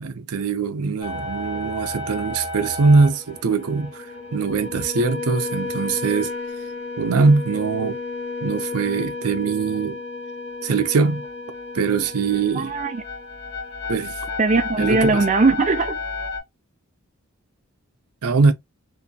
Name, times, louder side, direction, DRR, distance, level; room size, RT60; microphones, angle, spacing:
voice 1, 0.0-6.3 7.0-8.0 8.4-10.0 10.6-11.3 11.7-12.7 13.9-14.3 14.8-15.2 18.2-18.5, right 4 dB, 85° right, 0.5 m, -21 dB
sound 1, 1.0-16.4, left 3 dB, 70° left, 1.2 m, -32 dB
voice 2, 12.6-13.0 14.4-16.0, right 3 dB, 35° right, 0.4 m, -19 dB
3.0 x 2.6 x 2.7 m
head